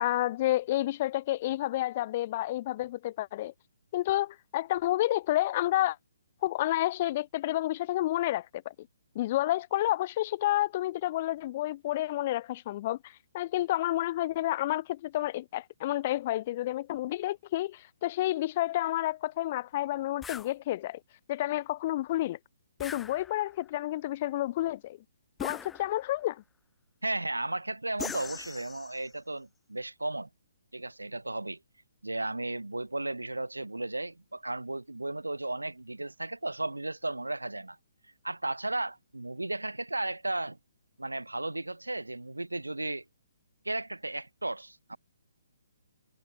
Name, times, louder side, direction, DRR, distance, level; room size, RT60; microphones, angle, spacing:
voice 1, 0.0-3.5 3.9-6.0 6.4-8.7 9.1-21.0 21.3-22.4 22.8-25.0 25.4-26.4, left 15 dB, 40° left, 1.0 m, -30 dB
sound 1, 20.2-20.5 22.8-23.6 25.4-26.2 28.0-29.1, left 6 dB, 10° left, 1.6 m, -41 dB
voice 2, 27.0-30.3 30.7-31.6 32.0-37.8 38.2-40.6 41.0-43.0 43.6-45.0, right 2 dB, 90° right, 1.4 m, -34 dB
figure-of-eight pair, 135°, 0 cm